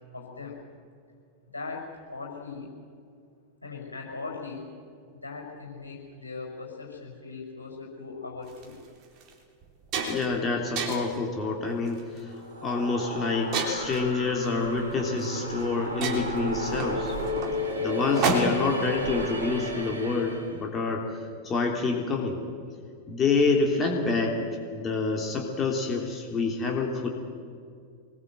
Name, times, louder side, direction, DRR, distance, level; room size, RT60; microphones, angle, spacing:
voice 1, 0.1-0.6 1.5-2.7 3.6-4.7 5.1-8.8, left 4 dB, 80° left, -1 dB, 5.7 m, -39 dB
sound 1, 8.5-8.6 9.2-9.3 9.6-10.4 10.8-11.2 11.9-12.2 13.5-14.1 15.2-15.3 15.6-15.7 16.0-18.8, right 3 dB, 40° right, 3.3 m, -30 dB
voice 2, 10.0-12.3 12.6-17.1 17.8-21.1 21.4-22.4 23.1-24.4 24.7-27.1, left 4 dB, 25° left, 1 dB, 3.1 m, -27 dB
sound 2, 12.3-20.6, equal, 80° right, 2.6 m, -33 dB
24.5 x 21.0 x 7.9 m, 2.3 s
figure-of-eight pair, 90°, 0 cm